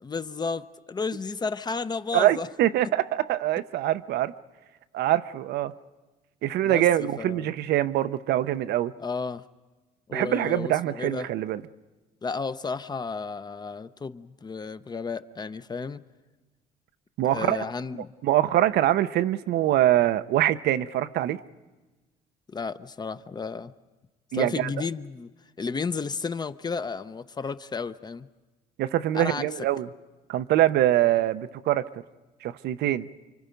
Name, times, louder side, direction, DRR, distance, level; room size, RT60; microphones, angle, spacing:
voice 1, 0.0-2.5 6.6-7.5 9.0-9.4 10.1-11.3 12.2-16.0 17.3-18.1 22.5-23.7 24.3-25.3 25.6-28.3 29.1-29.5, left 4 dB, 25° left, 0.7 m, -32 dB
voice 2, 2.1-4.3 4.9-5.7 6.4-8.9 10.1-11.6 17.2-17.6 18.2-21.4 24.3-24.7 28.8-29.9 30.3-31.9 32.4-33.1, right 13 dB, 75° right, 0.7 m, -24 dB
29.0 x 24.5 x 5.2 m
cardioid pair, 110°, 17 cm